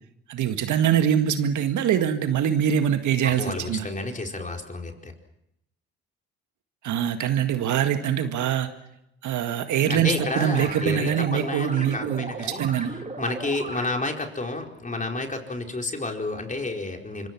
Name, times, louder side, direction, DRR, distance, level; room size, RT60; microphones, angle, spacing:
voice 1, 0.3-3.9 6.8-8.7 9.2-12.9, right 9 dB, 65° right, 8 dB, 1.9 m, -23 dB
voice 2, 3.2-5.1 9.9-12.6 13.2-17.3, left 2 dB, 25° left, 2 dB, 4.7 m, -30 dB
sound 1, 9.8-14.3, right 3 dB, 20° right, 2.6 m, -37 dB
25.0 x 23.5 x 6.1 m, 0.82 s
hypercardioid pair, 60°, 32 cm